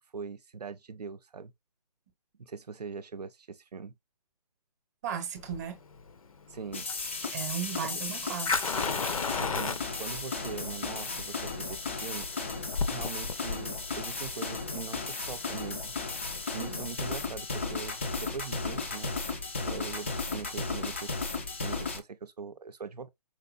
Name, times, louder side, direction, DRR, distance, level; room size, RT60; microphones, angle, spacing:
voice 1, 0.1-1.5 2.4-3.9 6.5-6.9 7.8-7.9 9.4-12.3 12.9-15.9 16.5-19.1 19.6-21.1 21.6-23.1, right 5 dB, 70° right, 0.6 m, -41 dB
voice 2, 5.0-5.8 7.3-8.6 16.6-16.8, right 8 dB, 25° right, 0.8 m, -36 dB
Fire, 5.4-16.4, left 5 dB, 55° left, 0.6 m, -35 dB
sound 1, 6.7-22.0, left 3 dB, 20° left, 0.4 m, -35 dB
4.8 x 2.8 x 2.4 m
figure-of-eight pair, 150°, 21 cm